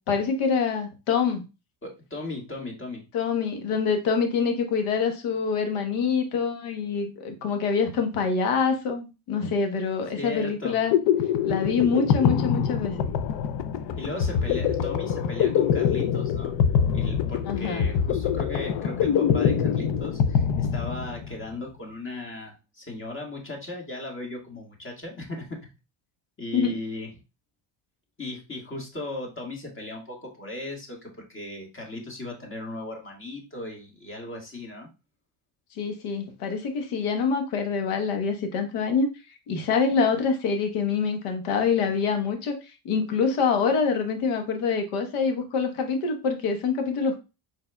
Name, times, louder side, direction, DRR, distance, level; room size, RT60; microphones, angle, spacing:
voice 1, 0.1-1.4 3.1-10.9 11.4-13.1 17.5-17.9 26.5-26.8 35.7-39.1 39.5-42.6 42.8-47.2, left 5 dB, 85° left, 5 dB, 1.2 m, -25 dB
voice 2, 1.8-3.0 10.2-10.8 14.0-16.5 16.9-25.7 26.4-27.1 28.2-34.9, left 2 dB, 25° left, 0 dB, 1.8 m, -37 dB
sound 1, 10.6-21.4, left 8 dB, 60° left, 0.6 m, -24 dB
4.7 x 4.4 x 2.2 m, 0.28 s
cardioid pair, 105°, 49 cm